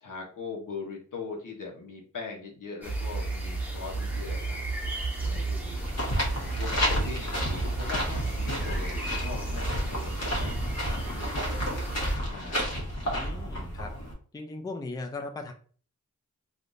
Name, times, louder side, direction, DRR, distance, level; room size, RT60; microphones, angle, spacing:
voice 1, 0.0-4.6 5.2-5.8 6.4-11.5 12.3-12.7, left 4 dB, 80° left, 0 dB, 1.0 m, -41 dB
sound 1, 2.8-12.2, right 3 dB, 5° right, 0.8 m, -33 dB
sound 2, 3.9-11.3, right 2 dB, 65° right, 0.7 m, -47 dB
sound 3, 5.8-14.1, equal, 55° left, 1.2 m, -31 dB
voice 2, 13.0-13.9 14.3-15.5, left 3 dB, 10° left, 5 dB, 0.4 m, -38 dB
3.5 x 2.4 x 2.6 m, 0.43 s
wide cardioid pair, 90°, 31 cm